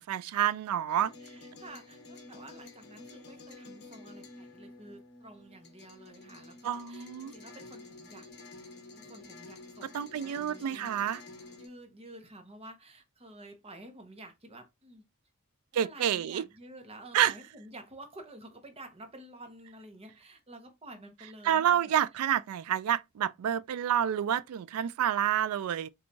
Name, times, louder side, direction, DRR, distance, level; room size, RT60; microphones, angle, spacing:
voice 1, 0.1-1.1 6.6-7.3 9.9-11.2 15.7-16.4 17.1-17.3 21.4-25.9, right 10 dB, 70° right, 0.3 m, -28 dB
sound 1, 0.9-11.7, left 2 dB, 50° left, 0.8 m, -50 dB
voice 2, 1.2-8.3 8.9-9.9 10.2-11.0 11.6-15.0 15.7-22.2, right 1 dB, 25° right, 0.8 m, -50 dB
4.4 x 2.3 x 2.6 m
head